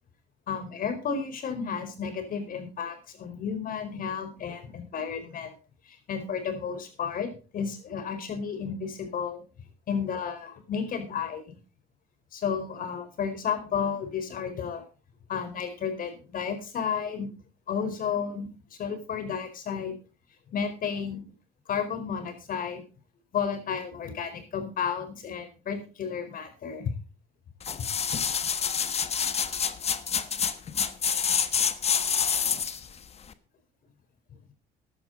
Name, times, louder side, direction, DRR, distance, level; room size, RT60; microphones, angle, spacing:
voice 1, 0.5-5.5 5.9-9.4 9.9-11.4 12.3-14.8 15.3-17.3 17.7-18.5 18.8-19.9 20.5-21.2 21.7-22.8 23.3-26.9, left 7 dB, 55° left, 8 dB, 4.7 m, -32 dB
sound 1, 27.6-32.9 33.3-33.4, left 7 dB, 40° left, 1.3 m, -27 dB
15.0 x 11.5 x 4.0 m, 0.34 s
cardioid pair, 110°, 17 cm